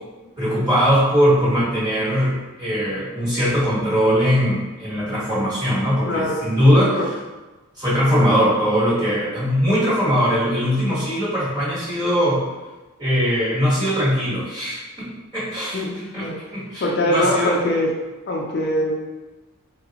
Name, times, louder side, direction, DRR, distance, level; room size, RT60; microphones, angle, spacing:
voice 1, 0.4-7.0 7.8-12.4 13.0-15.8 16.1-17.6, equal, 20° right, -9 dB, 1.3 m, -20 dB
voice 2, 6.1-6.4 7.0-7.1 15.7-16.4 16.8-17.9 18.3-18.9, left 1 dB, 50° left, -1 dB, 0.4 m, -22 dB
3.8 x 2.3 x 2.8 m, 1.2 s
head